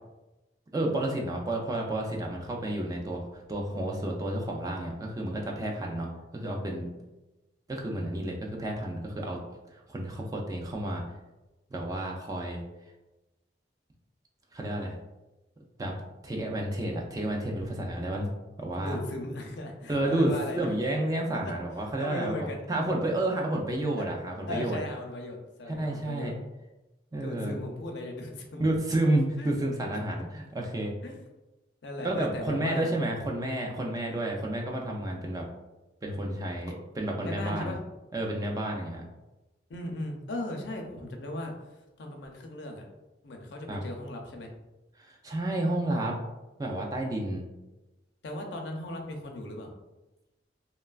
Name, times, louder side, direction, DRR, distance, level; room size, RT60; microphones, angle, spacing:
voice 1, 0.7-6.9 7.7-9.4 9.7-11.0 11.7-12.6 14.5-15.0 15.8-15.9 16.2-18.3 18.6-19.0 19.9-24.8 25.7-26.3 27.1-27.5 28.6-30.9 32.0-35.4 36.0-37.8 38.1-39.1 43.7-43.8 45.0-46.2 46.6-47.4, right 1 dB, 20° right, 0 dB, 0.3 m, -30 dB
voice 2, 18.7-20.7 21.4-21.5 22.0-22.6 24.0-24.1 24.5-26.3 27.2-28.7 29.4-29.5 31.0-31.2 31.8-32.9 37.2-37.8 39.7-42.8 43.2-44.5 48.2-49.7, left 1 dB, 75° left, 2 dB, 0.5 m, -37 dB
3.0 x 2.2 x 2.3 m, 1.0 s
head